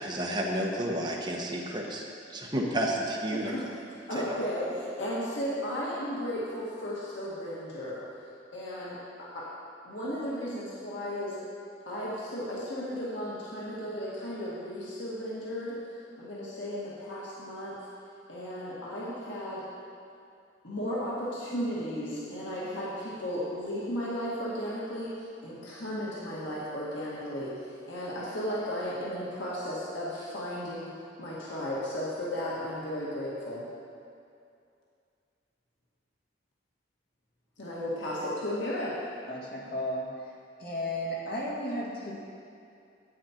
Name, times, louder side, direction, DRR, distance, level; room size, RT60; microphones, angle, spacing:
voice 1, 0.0-2.0 2.3-3.5 4.2-4.5, right 1 dB, 25° right, -2 dB, 1.2 m, -31 dB
voice 2, 4.1-8.0 8.5-9.5 9.8-11.4 11.9-15.8 16.2-17.8 18.3-19.6 20.6-25.1 25.4-30.9 31.2-33.6 37.6-39.0, equal, 75° left, -7 dB, 1.7 m, -34 dB
voice 3, 39.3-40.1 40.6-42.1, equal, 55° left, -4 dB, 2.0 m, -34 dB
9.5 x 8.6 x 4.4 m, 2.5 s
head